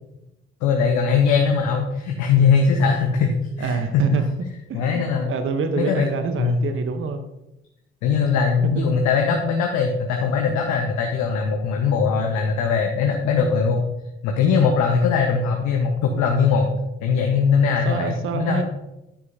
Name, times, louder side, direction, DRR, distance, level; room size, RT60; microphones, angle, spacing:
voice 1, 0.6-4.0 4.7-5.3 5.8-6.1 6.4-6.6 8.0-13.8 14.2-16.7 17.0-18.6, left 5 dB, 60° left, 2 dB, 1.2 m, -20 dB
voice 2, 3.6-4.2 4.7-7.2 8.7-8.8 17.8-18.6, right 4 dB, 40° right, 8 dB, 0.9 m, -26 dB
9.9 x 9.6 x 2.7 m, 0.92 s
figure-of-eight pair, 50°, 32 cm